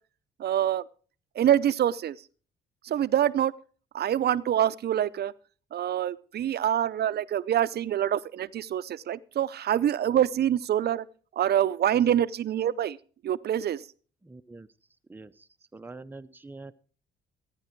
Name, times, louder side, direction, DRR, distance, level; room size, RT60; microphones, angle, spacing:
voice 1, 0.4-0.8 1.3-2.2 2.8-3.5 3.9-5.3 5.7-11.1 11.3-13.0 13.2-13.9, right 10 dB, 55° right, 16 dB, 0.6 m, -25 dB
voice 2, 14.2-14.7 15.1-15.5 15.7-16.7, right 3 dB, 10° right, 9 dB, 0.6 m, -44 dB
14.0 x 9.7 x 4.5 m, 0.41 s
cardioid pair, 90°, 20 cm